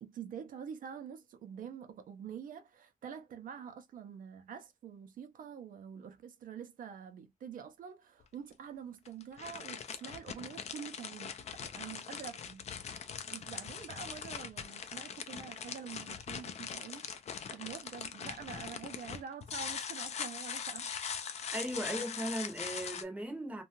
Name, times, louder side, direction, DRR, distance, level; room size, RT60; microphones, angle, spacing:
voice 1, 0.0-12.7 12.9-17.1 17.5-20.9, right 7 dB, 75° right, 0.5 m, -46 dB
sound 1, 8.2-8.3 9.0-23.0, left 7 dB, 50° left, 0.4 m, -41 dB
voice 2, 21.5-23.6, right 1 dB, 10° right, 0.7 m, -38 dB
2.6 x 2.2 x 2.8 m
wide cardioid pair, 170°, 14 cm